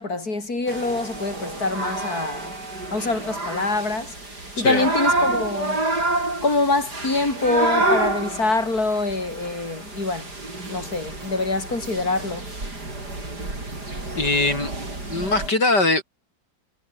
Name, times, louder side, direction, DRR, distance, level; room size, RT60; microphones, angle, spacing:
voice 1, 0.0-2.5 2.9-5.8 6.4-10.3 10.7-12.6, left 3 dB, 60° left, 6.3 m, -25 dB
sound 1, 0.7-15.5, right 2 dB, 70° right, 7.4 m, -28 dB
voice 2, 14.1-14.7 15.1-16.0, left 2 dB, 75° left, 6.7 m, -21 dB
omnidirectional pair, 1.8 m